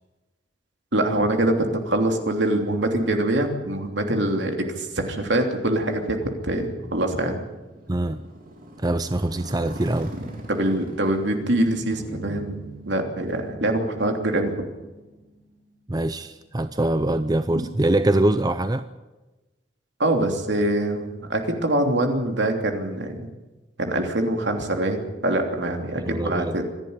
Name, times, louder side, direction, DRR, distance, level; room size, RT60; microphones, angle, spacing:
voice 1, 0.9-7.4 10.5-12.6 12.9-14.7 17.5-17.6 20.0-23.3 23.8-26.6, right 1 dB, 70° right, 4 dB, 3.1 m, -24 dB
Motorcycle, 6.2-15.5, right 1 dB, 50° right, 3.3 m, -42 dB
voice 2, 7.9-8.2 8.8-10.1 15.9-18.9 26.0-26.6, right 1 dB, 20° right, 11 dB, 0.6 m, -23 dB
sound 1, 11.9-16.5, right 3 dB, 25° left, 5.7 m, -44 dB
26.0 x 11.0 x 9.7 m, 1.1 s
head